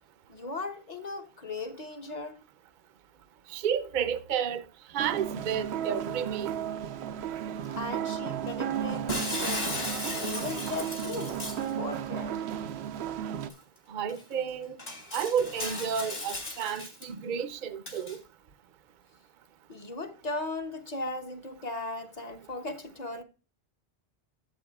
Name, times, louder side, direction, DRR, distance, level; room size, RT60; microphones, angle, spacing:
voice 1, 0.3-2.4 7.7-11.4 11.8-12.4 19.7-23.2, left 2 dB, 45° left, 1.1 m, -37 dB
voice 2, 3.5-4.6 4.9-6.5 13.9-14.8 15.1-18.2, right 8 dB, 55° right, 0.7 m, -31 dB
sound 1, 5.0-13.5, right 9 dB, 90° right, 0.9 m, -34 dB
Shatter, 9.1-11.7 13.5-13.6 14.1-14.2 14.8-17.1 17.9-18.2, left 1 dB, 60° left, 3.0 m, -36 dB
13.5 x 7.5 x 2.3 m
omnidirectional pair, 1.0 m